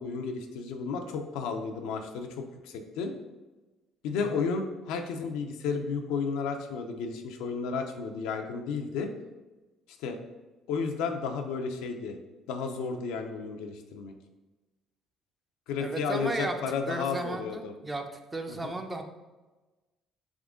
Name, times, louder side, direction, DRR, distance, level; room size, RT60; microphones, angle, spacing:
voice 1, 0.0-3.1 4.0-9.1 10.0-10.2 10.7-12.2 12.5-14.1 15.7-17.7 18.5-18.7, left 5 dB, 90° left, 4 dB, 0.5 m, -33 dB
voice 2, 15.8-16.6 16.9-18.0 18.3-19.0, right 2 dB, 15° right, 5 dB, 0.5 m, -34 dB
3.6 x 3.5 x 3.6 m, 1.2 s
cardioid pair, 105°, 0 cm